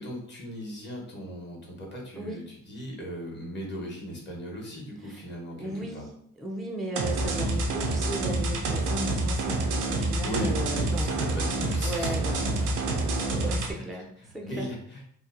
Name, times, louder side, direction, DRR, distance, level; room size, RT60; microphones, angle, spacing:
voice 1, 0.0-6.0 10.2-12.2 13.6-13.8 14.2-15.0, equal, 35° left, -1 dB, 1.0 m, -37 dB
voice 2, 5.6-11.5 11.8-14.7, right 1 dB, ahead, 0 dB, 0.4 m, -37 dB
sound 1, 6.9-13.7, right 2 dB, 90° right, 0.5 m, -27 dB
2.8 x 2.0 x 2.4 m, 0.63 s
cardioid pair, 90°, 30 cm